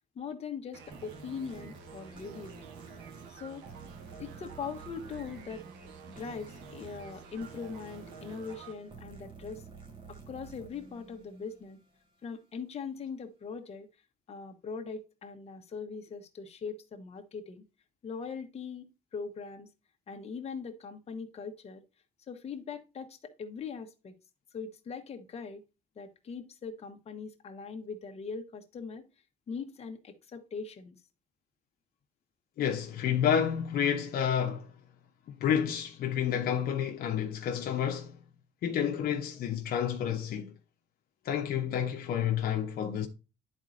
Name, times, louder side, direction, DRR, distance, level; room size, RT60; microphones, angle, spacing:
voice 1, 0.1-2.6 3.3-3.7 4.2-5.6 6.1-9.6 10.1-11.8 12.2-13.9 14.3-17.6 18.0-18.9 19.1-19.7 20.1-21.8 22.3-24.1 24.5-25.6 26.0-29.1 29.5-31.0, left 5 dB, 40° left, 1.1 m, -41 dB
sound 1, 0.7-8.7, right 6 dB, 85° right, 1.1 m, -50 dB
sound 2, 0.9-12.1, right 4 dB, 30° right, 1.6 m, -51 dB
voice 2, 32.6-34.7 35.3-38.2 38.6-40.5 41.2-43.1, left 9 dB, 65° left, 0.9 m, -30 dB
11.0 x 4.2 x 2.5 m
cardioid pair, 110°, 17 cm